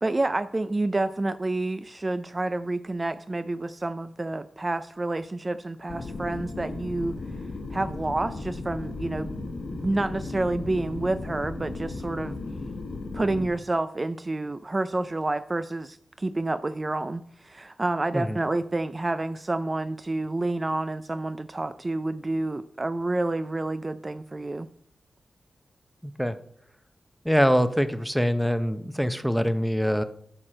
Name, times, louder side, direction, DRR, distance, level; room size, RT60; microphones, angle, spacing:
voice 1, 0.0-7.2 7.7-9.5 9.8-12.4 13.1-24.7, right 2 dB, 30° right, 11 dB, 0.4 m, -29 dB
sound 1, 5.9-13.5, left 3 dB, 90° left, 1.4 m, -35 dB
voice 2, 26.0-26.4 27.2-30.0, equal, ahead, 11 dB, 0.7 m, -24 dB
12.5 x 4.4 x 4.4 m, 0.66 s
cardioid pair, 65°, 0 cm